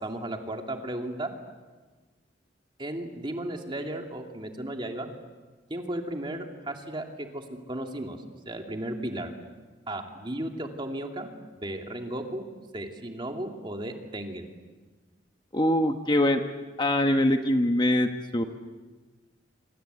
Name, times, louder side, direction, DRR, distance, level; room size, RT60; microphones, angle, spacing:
voice 1, 0.0-1.3 2.8-5.1 5.7-8.2 8.5-9.3 9.9-11.3 11.6-12.4 12.7-14.5, right 1 dB, 25° right, 3 dB, 2.6 m, -35 dB
voice 2, 15.5-16.4 16.8-18.4, left 1 dB, 25° left, 6 dB, 1.2 m, -23 dB
26.5 x 25.5 x 8.2 m, 1.3 s
head